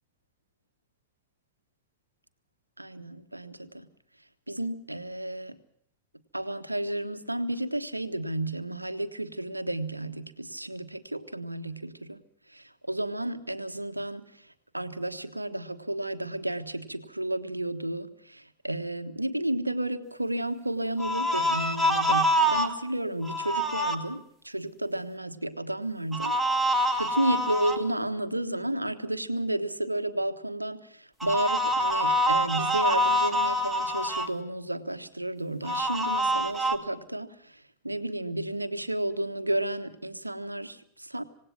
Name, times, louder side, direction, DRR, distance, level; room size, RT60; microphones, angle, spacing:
voice 1, 2.8-3.9 4.5-5.6 6.3-12.2 12.5-41.2, right 1 dB, 85° right, 9 dB, 1.3 m, -32 dB
sound 1, 21.0-22.7 23.2-24.0 26.1-27.8 31.2-34.3 35.6-36.8, equal, 5° right, 2.3 m, -25 dB
27.0 x 18.0 x 5.9 m, 0.67 s
figure-of-eight pair, 90°, 0 cm